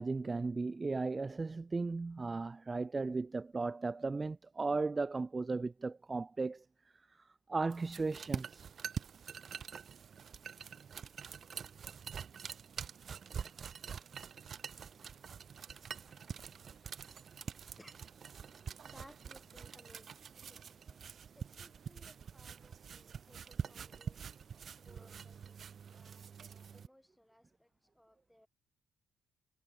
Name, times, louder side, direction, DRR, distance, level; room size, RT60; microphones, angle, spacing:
voice 1, 0.0-6.7 6.9-8.7 25.0-25.1, right 3 dB, 25° right, 0.3 m, -36 dB
sound 1, 7.7-26.9, right 7 dB, 50° right, 2.3 m, -46 dB
voice 2, 14.7-28.5, equal, 5° left, 7.3 m, -64 dB
cardioid pair, 90°, 0 cm